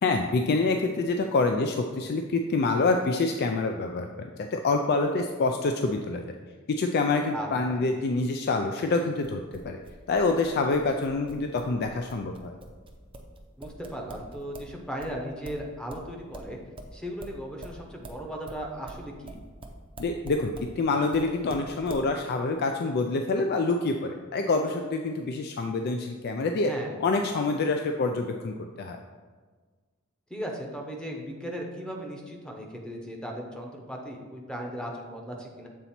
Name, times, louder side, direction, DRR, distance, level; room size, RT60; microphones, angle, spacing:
voice 1, 0.0-6.2 6.7-9.8 10.1-12.5 20.0-26.7 27.0-29.0, left 3 dB, 50° left, 4 dB, 0.4 m, -26 dB
voice 2, 7.3-7.8 13.6-16.6 16.9-19.4 26.7-27.0 30.3-35.7, equal, 5° left, 0 dB, 0.8 m, -37 dB
sound 1, 9.2-14.7 15.0-20.7 21.1-22.1, right 2 dB, 25° right, 0.6 m, -43 dB
7.4 x 4.0 x 4.3 m, 1.5 s
head